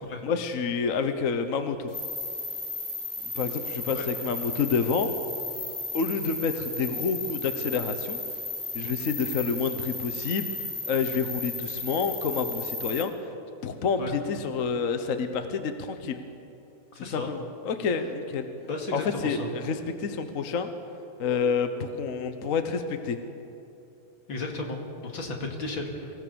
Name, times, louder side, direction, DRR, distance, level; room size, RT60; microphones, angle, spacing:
voice 1, 0.2-1.9 3.3-5.1 5.9-8.2 8.7-10.5 10.8-13.1 13.6-16.2 17.0-18.5 18.9-20.7 21.2-23.2, left 5 dB, 50° left, 8 dB, 1.1 m, -28 dB
sound 1, 1.9-13.0, left 2 dB, 10° left, 3.8 m, -34 dB
voice 2, 16.9-17.3 18.6-19.5 24.3-26.1, left 2 dB, 65° left, 1 dB, 3.0 m, -34 dB
24.0 x 16.5 x 7.0 m, 2.8 s
omnidirectional pair, 2.3 m